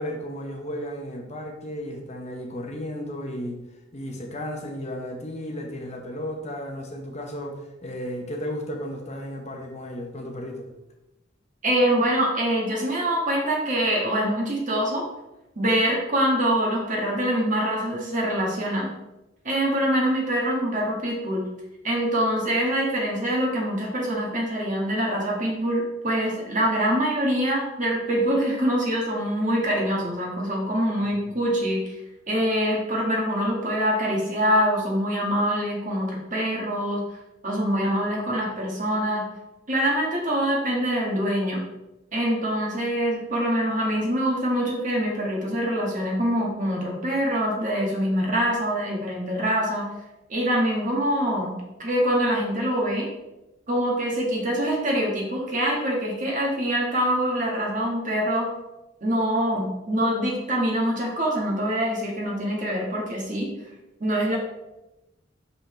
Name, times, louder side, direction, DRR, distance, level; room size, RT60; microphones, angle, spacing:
voice 1, 0.0-3.6 3.9-10.7 31.2-31.3, equal, 35° left, 2 dB, 0.9 m, -34 dB
voice 2, 11.6-15.0 15.5-18.9 19.4-21.4 21.8-32.0 32.3-37.0 37.4-39.2 39.7-41.6 42.1-49.9 50.3-53.1 53.7-58.5 59.0-63.5 64.0-64.4, equal, 45° right, -2 dB, 1.7 m, -24 dB
5.9 x 5.5 x 3.3 m, 0.98 s
head